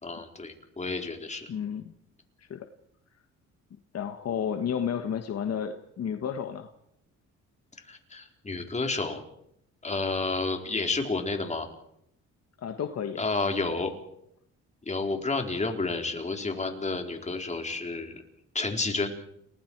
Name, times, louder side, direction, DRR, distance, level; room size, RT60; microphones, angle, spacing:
voice 1, 0.0-1.5 7.9-9.2 9.8-11.7 13.2-13.9 14.8-18.2 18.5-19.1, left 3 dB, 25° left, 3 dB, 4.1 m, -30 dB
voice 2, 1.5-1.8 2.4-2.7 3.9-6.7 12.6-13.3, left 8 dB, 55° left, 7 dB, 1.5 m, -32 dB
29.5 x 20.0 x 4.7 m, 0.75 s
cardioid pair, 90°, 30 cm